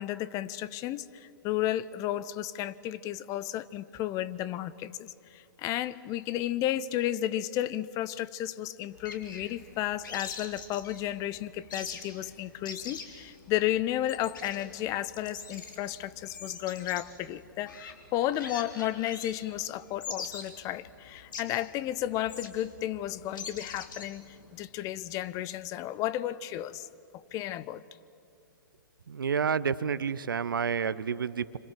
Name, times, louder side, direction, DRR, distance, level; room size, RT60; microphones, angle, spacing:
voice 1, 0.0-24.3 24.5-26.9 27.3-27.8, left 13 dB, 30° left, 17 dB, 0.7 m, -33 dB
sound 1, 8.9-24.6, left 5 dB, 65° left, 3.6 m, -45 dB
voice 2, 29.1-31.6, right 6 dB, 75° right, 16 dB, 0.9 m, -29 dB
26.5 x 26.5 x 7.7 m, 2.8 s
figure-of-eight pair, 115°, 11 cm